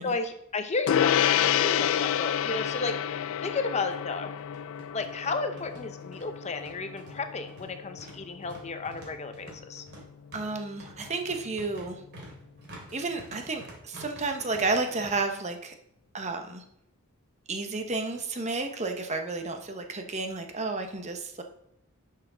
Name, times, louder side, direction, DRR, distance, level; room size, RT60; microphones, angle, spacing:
voice 1, 0.0-4.3 4.9-9.8, left 3 dB, 30° left, 8 dB, 0.6 m, -33 dB
Gong, 0.9-10.6, left 10 dB, 70° left, 0.3 m, -30 dB
sound 1, 3.1-3.2 3.4-3.5 4.4-15.1, right 1 dB, 50° right, 2.8 m, -48 dB
voice 2, 10.3-12.0 12.9-15.7 16.1-16.6 17.5-21.4, right 3 dB, 30° right, 5 dB, 0.9 m, -31 dB
11.0 x 5.8 x 3.9 m, 0.78 s
head